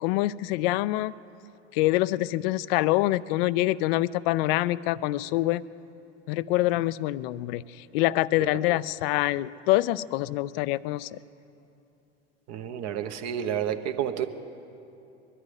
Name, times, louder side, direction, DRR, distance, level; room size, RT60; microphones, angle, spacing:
voice 1, 0.0-1.1 1.7-5.6 6.3-11.2, left 17 dB, 55° left, 18 dB, 0.5 m, -25 dB
voice 2, 12.5-14.3, right 9 dB, 50° right, 7 dB, 1.1 m, -30 dB
21.5 x 12.5 x 5.0 m, 2.8 s
hypercardioid pair, 75°, 34 cm